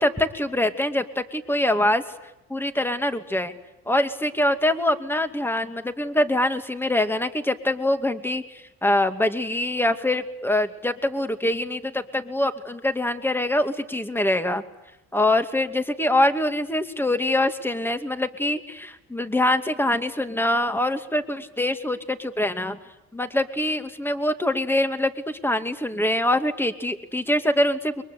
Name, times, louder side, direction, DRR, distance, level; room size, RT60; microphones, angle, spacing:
voice 1, 0.0-2.0 2.5-3.5 3.9-14.6 15.1-22.8 23.1-28.0, left 1 dB, 5° left, 8 dB, 2.4 m, -24 dB
30.0 x 23.5 x 8.4 m, 0.90 s
cardioid pair, 90°, 30 cm